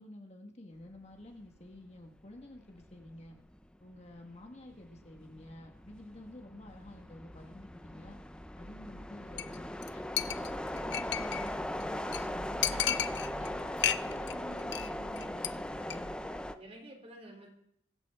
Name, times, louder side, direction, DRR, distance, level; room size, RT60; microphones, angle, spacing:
voice 1, 0.0-3.4 3.8-8.2 8.5-13.0 13.4-16.2, left 1 dB, 40° left, 3 dB, 1.5 m, -50 dB
sound 1, 1.6-1.8 2.2-16.6, left 1 dB, 5° left, 0.5 m, -39 dB
Chink clink, 9.4-9.6 9.8-9.9 10.2-11.5 11.8-11.9 12.1-12.2 12.6-13.5 13.8-14.3 14.6-14.9 15.2-15.5 15.8-16.0, left 11 dB, 80° left, 0.5 m, -32 dB
voice 2, 16.1-17.5, right 1 dB, 35° right, 1 dB, 3.2 m, -51 dB
23.0 x 8.8 x 3.6 m, 0.69 s
head